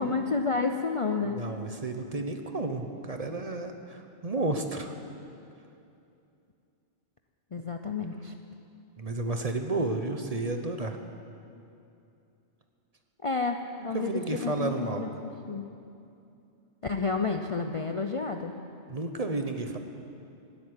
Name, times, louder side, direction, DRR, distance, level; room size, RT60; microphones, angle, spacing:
voice 1, 0.0-1.4 7.5-8.3 13.2-15.7 16.8-18.5, left 4 dB, 40° left, 4 dB, 0.5 m, -30 dB
voice 2, 1.4-4.9 9.0-11.0 13.9-15.0 18.9-19.8, right 2 dB, 35° right, 5 dB, 1.0 m, -32 dB
17.0 x 8.5 x 9.8 m, 2.7 s
omnidirectional pair, 1.2 m